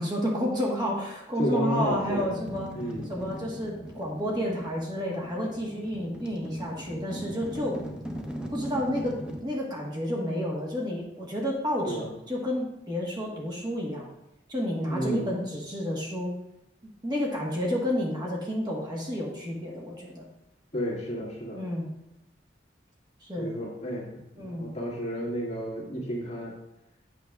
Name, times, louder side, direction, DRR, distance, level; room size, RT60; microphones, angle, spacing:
voice 1, 0.0-2.7 3.1-7.8 8.5-14.1 14.5-16.3 17.0-20.3 21.5-21.9 23.2-23.5 24.3-24.7, equal, 25° right, -3 dB, 1.3 m, -30 dB
voice 2, 1.4-2.3 2.7-3.1 11.9-12.1 14.9-15.3 20.7-21.6 23.4-26.5, equal, 35° left, -4 dB, 1.9 m, -32 dB
sound 1, 1.8-9.4, equal, 5° right, 0.7 m, -40 dB
8.9 x 6.6 x 2.4 m, 0.86 s
head